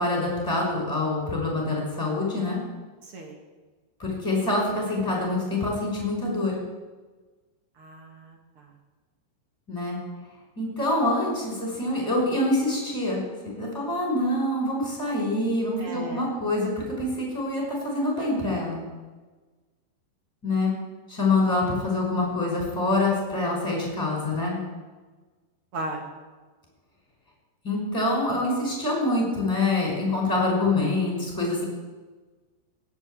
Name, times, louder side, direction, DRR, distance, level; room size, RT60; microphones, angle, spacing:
voice 1, 0.0-2.6 4.0-6.5 9.7-10.0 10.6-18.9 20.4-20.7 21.1-24.6 27.6-31.6, left 2 dB, 5° left, -2 dB, 5.0 m, -25 dB
voice 2, 3.0-3.4 7.8-8.7 15.8-16.3 25.7-26.1, right 2 dB, 60° right, 1 dB, 1.4 m, -36 dB
17.0 x 7.5 x 9.1 m, 1.3 s
omnidirectional pair, 5.5 m